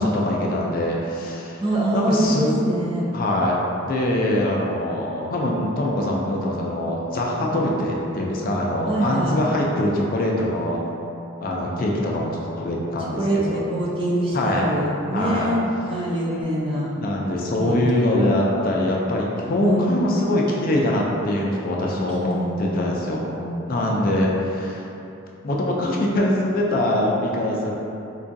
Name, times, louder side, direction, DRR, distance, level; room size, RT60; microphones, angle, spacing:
voice 1, 0.0-1.6 1.9-2.6 3.1-10.8 11.4-12.3 12.6-13.6 14.3-14.7 15.1-15.5 17.0-23.4 23.7-24.8 25.4-27.7, left 1 dB, 45° left, -2 dB, 0.4 m, -23 dB
voice 2, 1.6-3.0 8.9-9.3 13.2-16.9 17.6-18.1 19.6-20.0 22.2-23.0 23.4-24.1, right 1 dB, 25° right, -5 dB, 0.4 m, -25 dB
4.4 x 2.4 x 2.6 m, 2.8 s
head